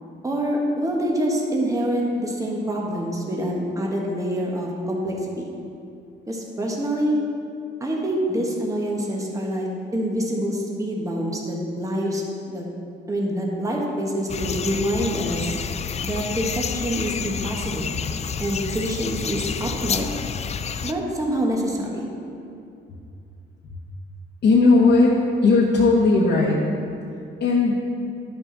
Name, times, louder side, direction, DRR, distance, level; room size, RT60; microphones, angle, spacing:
voice 1, 0.2-5.5 6.3-7.2 7.8-12.6 13.1-15.5 16.0-17.9 18.4-20.1 20.8-22.0, equal, 15° right, -2 dB, 1.4 m, -26 dB
sound 1, 14.3-20.9, left 7 dB, 35° left, 0.4 m, -29 dB
voice 2, 24.4-25.1 25.4-26.6 27.4-27.8, left 3 dB, 60° left, -6 dB, 1.2 m, -16 dB
11.0 x 5.9 x 4.0 m, 2.5 s
cardioid pair, 90°, 20 cm